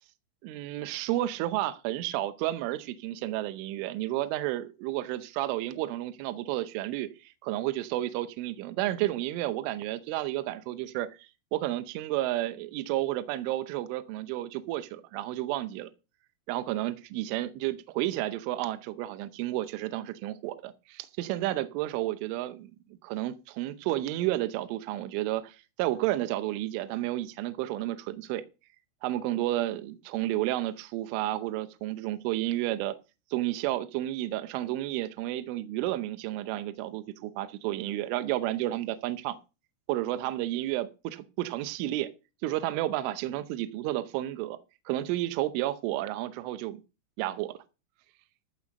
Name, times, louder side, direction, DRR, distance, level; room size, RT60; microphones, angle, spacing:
voice 1, 0.4-15.9 16.5-22.7 23.0-28.4 29.0-33.0 33.3-39.4 39.9-42.1 42.4-44.6 44.9-46.8 47.2-47.5, right 15 dB, 80° right, 3.2 m, -31 dB
14.5 x 5.6 x 6.4 m
omnidirectional pair, 5.8 m